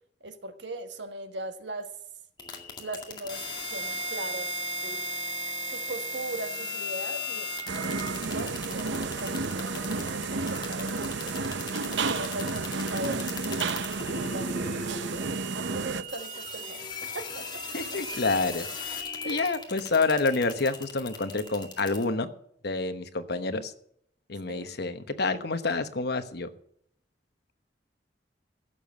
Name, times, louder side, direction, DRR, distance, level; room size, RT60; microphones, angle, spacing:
voice 1, 0.2-1.9 2.8-3.4 3.7-5.0 5.7-7.5 7.8-11.5 11.9-13.2 14.2-15.3 15.5-16.9 17.1-17.4 19.2-19.4 24.5-24.7, right 2 dB, 70° right, 8 dB, 1.4 m, -39 dB
sound 1, 2.4-22.0, left 2 dB, 25° left, 2.1 m, -37 dB
sound 2, 7.7-16.0, right 3 dB, 85° right, 0.8 m, -31 dB
voice 2, 17.7-19.0 19.2-22.3 22.6-23.7 24.3-26.5, left 3 dB, 65° left, 10 dB, 1.1 m, -28 dB
15.5 x 7.1 x 6.6 m, 0.70 s
head